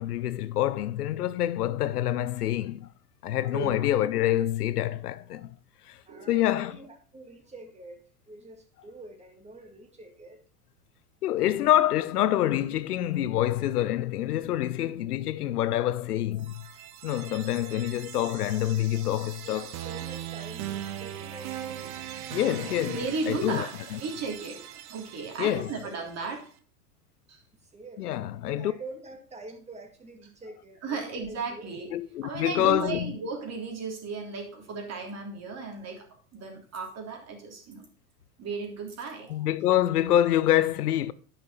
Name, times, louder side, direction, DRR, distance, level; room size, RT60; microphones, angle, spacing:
voice 1, 0.0-2.9 3.2-5.6 5.9-6.0 6.3-6.8 11.2-16.5 17.0-19.7 22.3-24.0 25.4-25.7 28.0-28.7 31.9-33.1 39.3-41.1, left 12 dB, 85° left, 0.7 m, -26 dB
voice 2, 6.1-10.4 19.4-21.9 22.6-23.6 25.8-25.9 27.6-31.7 39.1-39.5, right 2 dB, 15° right, 2.2 m, -47 dB
sound 1, 16.3-26.3, right 11 dB, 70° right, 1.1 m, -40 dB
voice 3, 22.8-24.6 24.9-26.5 27.3-27.4 30.8-31.9 32.2-36.1 36.3-37.9 38.4-39.3, right 4 dB, 35° right, 3.3 m, -35 dB
10.5 x 6.0 x 4.2 m
hypercardioid pair, 95°, 45 cm